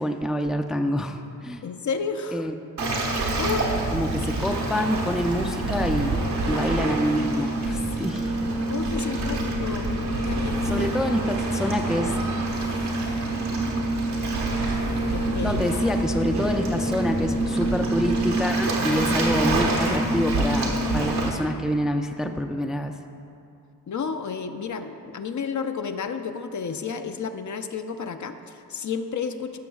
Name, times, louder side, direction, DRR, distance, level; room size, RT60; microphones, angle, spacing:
voice 1, 0.0-1.7 2.3-2.6 3.9-8.3 10.6-12.2 15.4-22.9, equal, ahead, 5 dB, 0.4 m, -27 dB
voice 2, 1.6-2.5 2.8-3.7 6.5-6.7 8.7-10.9 15.1-15.6 17.6-17.7 23.9-29.6, left 6 dB, 50° left, 7 dB, 0.6 m, -32 dB
Waves surf, 2.8-21.3, right 2 dB, 80° right, 1.5 m, -26 dB
13.5 x 6.1 x 2.4 m, 2.6 s
supercardioid pair, 45°, 39 cm